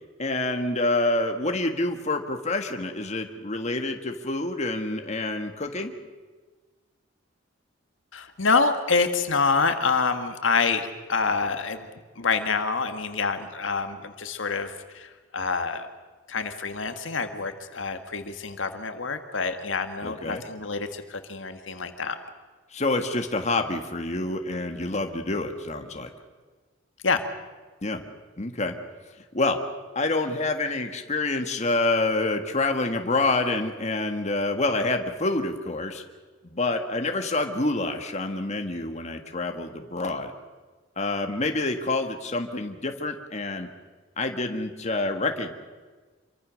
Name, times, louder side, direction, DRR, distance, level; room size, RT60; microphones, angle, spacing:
voice 1, 0.2-5.9 20.0-20.4 22.7-26.1 27.8-28.0 28.4-28.8 29.3-29.6 30.0-36.0 36.4-40.3 41.0-43.7 44.2-45.5, left 2 dB, 35° left, 5 dB, 1.8 m, -27 dB
voice 2, 8.1-11.9 12.2-15.9 16.3-22.2 27.0-27.2, left 4 dB, 75° left, 7 dB, 1.9 m, -27 dB
27.0 x 24.0 x 6.5 m, 1.4 s
head